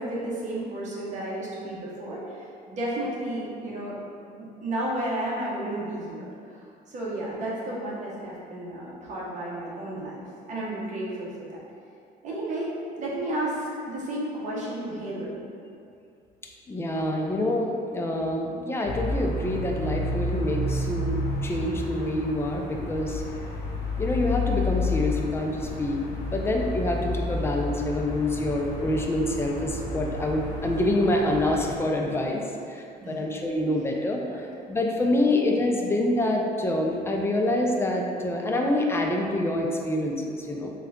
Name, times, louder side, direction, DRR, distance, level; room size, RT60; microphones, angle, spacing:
voice 1, 0.0-4.0 4.4-6.6 6.9-11.6 12.2-15.4 33.0-33.3 33.7-33.9 34.3-34.7, right 1 dB, 45° right, -5 dB, 0.9 m, -32 dB
voice 2, 16.7-23.2 24.0-26.0 26.3-32.4 32.7-34.2 34.7-40.7, left 1 dB, 15° left, 0 dB, 0.4 m, -26 dB
sound 1, 18.9-31.8, left 2 dB, 80° left, 0.7 m, -31 dB
3.6 x 2.3 x 3.5 m, 2.4 s
cardioid pair, 110°, 17 cm